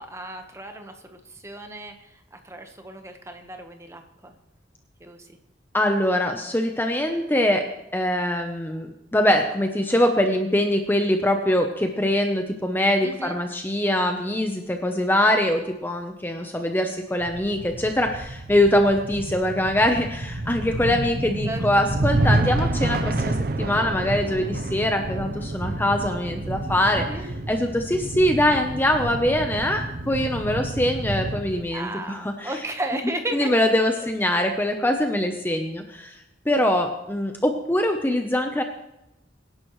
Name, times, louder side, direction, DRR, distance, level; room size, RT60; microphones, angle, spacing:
voice 1, 0.0-4.3 5.0-5.4 13.0-13.4 21.5-21.8 26.9-27.3 31.7-33.6 33.9-34.0 36.5-36.7, right 1 dB, 15° right, 5 dB, 1.2 m, -35 dB
voice 2, 5.7-7.7 7.9-27.1 27.5-32.5 33.3-36.2 36.5-38.6, left 1 dB, 10° left, 4 dB, 0.8 m, -23 dB
sound 1, 17.2-31.6, right 2 dB, 55° right, 0.8 m, -29 dB
24.5 x 11.0 x 3.2 m, 0.89 s
head